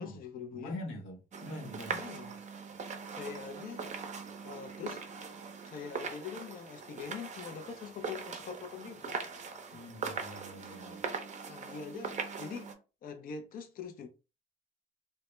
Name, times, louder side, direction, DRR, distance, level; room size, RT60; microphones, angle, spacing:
voice 1, 0.0-0.8 2.0-2.3 3.1-3.9 4.4-5.0 5.7-9.2 11.5-12.7 13.0-14.1, left 6 dB, 45° left, 0.4 m, -43 dB
voice 2, 0.5-2.0 9.7-11.0, left 1 dB, 85° left, 0.8 m, -44 dB
sound 1, 1.3-12.7, right 5 dB, 35° right, 0.5 m, -41 dB
2.1 x 2.0 x 3.0 m
cardioid pair, 90°, 20 cm